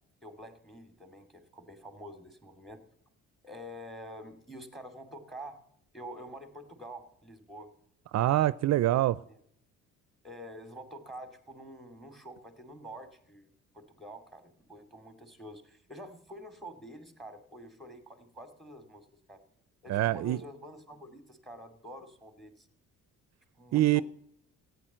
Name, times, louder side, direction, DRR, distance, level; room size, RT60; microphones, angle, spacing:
voice 1, 0.2-2.8 3.4-5.6 5.9-7.7 8.7-8.9 10.2-13.5 13.7-19.4 19.8-22.7 23.6-24.0, equal, ahead, 9 dB, 2.5 m, -47 dB
voice 2, 8.1-9.2 19.9-20.4 23.7-24.0, right 15 dB, 65° right, 18 dB, 0.5 m, -25 dB
14.0 x 9.6 x 7.4 m, 0.70 s
cardioid pair, 90°, 30 cm